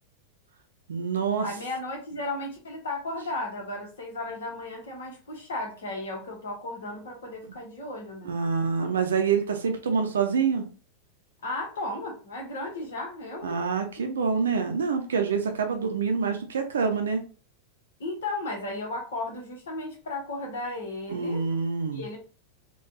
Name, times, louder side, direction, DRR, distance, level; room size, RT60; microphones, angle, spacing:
voice 1, 0.9-1.5 8.2-10.6 13.4-17.2 21.1-22.0, right 5 dB, 65° right, 5 dB, 0.6 m, -26 dB
voice 2, 1.4-8.3 11.4-13.6 14.0-14.1 18.0-21.4 21.9-22.2, left 2 dB, 65° left, 1 dB, 1.1 m, -35 dB
3.8 x 2.3 x 2.8 m, 0.36 s
figure-of-eight pair, 90°, 0 cm